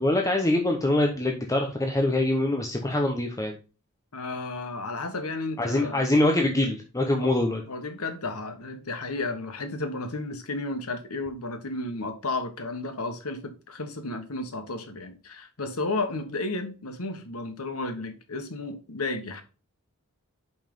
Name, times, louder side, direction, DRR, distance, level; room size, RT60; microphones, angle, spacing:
voice 1, 0.0-3.6 5.6-7.6, left 1 dB, 15° left, 0.9 m, -24 dB
voice 2, 4.1-6.1 7.2-7.3 7.7-19.4, left 2 dB, 90° left, 1.4 m, -33 dB
5.7 x 5.4 x 5.4 m
head